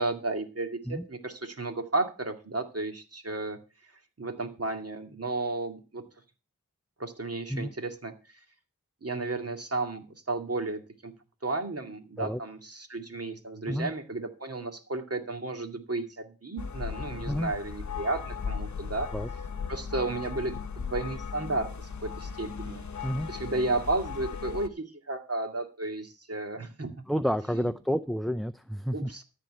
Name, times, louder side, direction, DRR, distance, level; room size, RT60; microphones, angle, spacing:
voice 1, 0.0-3.6 4.2-6.0 7.0-8.4 9.0-11.1 11.4-19.1 19.7-22.9 23.3-26.9 27.5-28.0 28.9-29.2, right 2 dB, 40° right, 5 dB, 2.3 m, -33 dB
sound 1, 16.6-24.7, left 6 dB, 50° left, 0.9 m, -37 dB
voice 2, 27.1-29.1, equal, ahead, 11 dB, 0.6 m, -30 dB
13.5 x 4.5 x 7.8 m, 0.33 s
cardioid pair, 45°, 35 cm